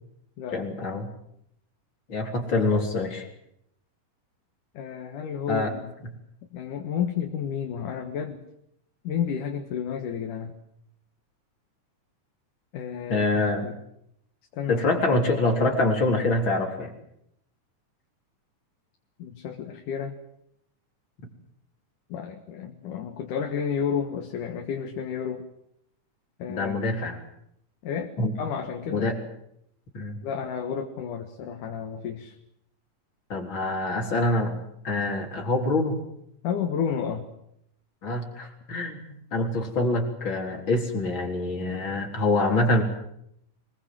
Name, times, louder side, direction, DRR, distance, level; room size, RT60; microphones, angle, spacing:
voice 1, 0.5-1.1 2.1-3.3 5.5-5.7 13.1-13.7 14.7-16.9 26.5-27.2 28.2-28.3 28.9-29.2 29.9-30.2 33.3-36.0 38.0-42.8, left 2 dB, 35° left, 3 dB, 4.4 m, -25 dB
voice 2, 4.7-5.9 6.5-8.4 9.0-10.6 12.7-13.7 14.5-14.8 19.2-20.2 22.1-25.4 26.4-27.0 27.8-28.1 28.4-29.1 30.2-32.4 36.4-37.3, left 7 dB, 75° left, 4 dB, 3.1 m, -31 dB
25.0 x 20.5 x 7.7 m, 0.75 s
omnidirectional pair, 3.7 m